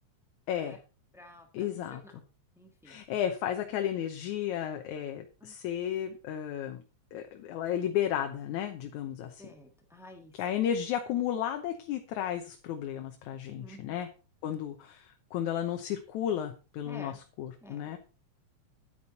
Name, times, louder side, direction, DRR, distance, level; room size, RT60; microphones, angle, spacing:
voice 1, 0.5-0.8 1.5-2.0 2.9-6.8 7.1-9.4 10.4-14.1 14.4-18.0, left 10 dB, 80° left, 6 dB, 2.3 m, -33 dB
voice 2, 1.1-1.7 2.0-2.1 2.6-3.0 5.4-5.6 9.4-10.3 13.6-13.8 14.5-14.6 16.8-17.2 17.6-17.9, left 1 dB, 5° right, 3 dB, 0.4 m, -50 dB
10.0 x 8.9 x 4.1 m, 0.33 s
omnidirectional pair, 3.4 m